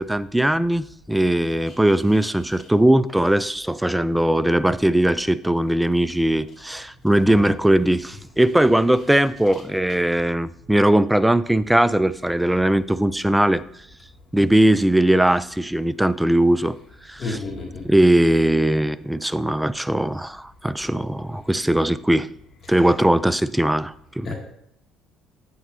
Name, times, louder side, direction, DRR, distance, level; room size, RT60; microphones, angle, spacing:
voice 1, 0.0-13.6 14.3-16.8 17.1-17.4 17.8-22.3 22.7-24.3, right 1 dB, 5° right, 16 dB, 0.4 m, -19 dB
voice 2, 17.2-17.8 24.2-24.3, left 3 dB, 50° left, 0 dB, 2.2 m, -30 dB
9.3 x 8.4 x 2.7 m, 0.74 s
supercardioid pair, 75°, 0 cm